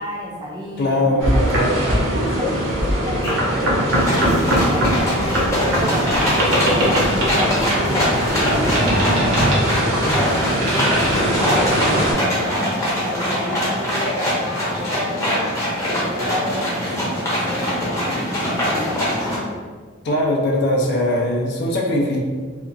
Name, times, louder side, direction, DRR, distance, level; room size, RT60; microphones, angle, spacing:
voice 1, 0.0-2.5 2.8-4.9 5.7-6.1 6.5-10.7 11.2-15.5 15.8-19.1, equal, 20° right, -3 dB, 0.4 m, -31 dB
voice 2, 0.8-1.8 20.0-22.2, left 1 dB, 55° left, 0 dB, 0.4 m, -20 dB
sound 1, 1.2-12.1, equal, 75° right, 0.7 m, -20 dB
sound 2, 2.0-2.1 2.4-2.8 3.2-19.4, equal, 15° left, 0.7 m, -23 dB
2.8 x 2.3 x 2.5 m, 1.5 s
head